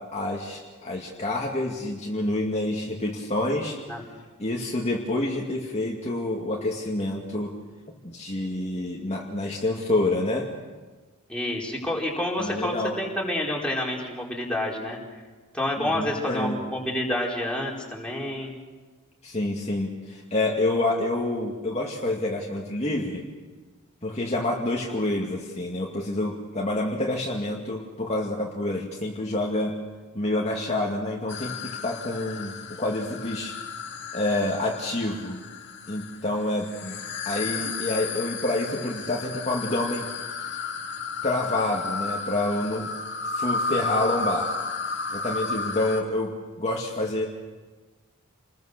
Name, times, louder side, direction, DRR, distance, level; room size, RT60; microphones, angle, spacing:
voice 1, 0.0-3.8 4.4-7.5 8.0-10.5 12.4-12.9 15.8-16.6 19.2-23.2 24.0-29.7 30.1-33.5 34.1-35.4 35.9-37.0 37.3-40.1 41.2-42.9 43.3-44.5 45.1-47.2, left 1 dB, 30° left, -2 dB, 2.3 m, -28 dB
voice 2, 11.3-15.0 15.5-18.5, left 1 dB, 5° left, -3 dB, 4.7 m, -28 dB
sound 1, 31.3-46.0, left 4 dB, 55° left, 2.1 m, -33 dB
29.0 x 21.0 x 6.7 m, 1.3 s
head